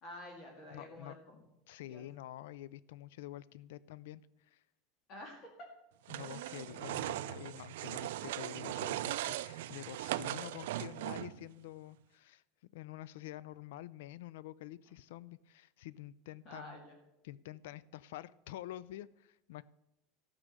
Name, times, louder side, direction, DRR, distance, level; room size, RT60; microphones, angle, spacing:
voice 1, 0.0-1.4 1.9-2.0 5.1-5.7 16.5-17.0, left 1 dB, 30° left, 2.0 m, -49 dB
voice 2, 0.7-1.2 1.7-4.6 6.1-16.8 17.2-19.6, left 14 dB, 75° left, 0.3 m, -48 dB
sound 1, 6.1-11.5, right 14 dB, 80° right, 0.4 m, -39 dB
13.5 x 6.1 x 6.6 m
supercardioid pair, 180°, 0 cm